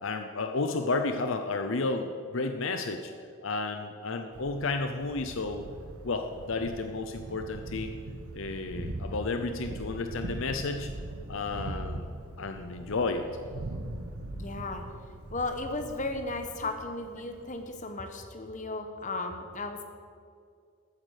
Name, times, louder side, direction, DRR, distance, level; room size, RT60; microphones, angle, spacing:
voice 1, 0.0-3.1 3.4-5.6 6.0-8.0 8.3-10.9 11.3-13.3, left 3 dB, 60° left, 6 dB, 0.7 m, -32 dB
Thunder, 4.3-17.7, right 1 dB, 85° right, 1.1 m, -41 dB
voice 2, 14.3-14.9 15.3-19.8, left 2 dB, 35° left, 6 dB, 1.1 m, -35 dB
14.0 x 9.0 x 6.5 m, 2.3 s
head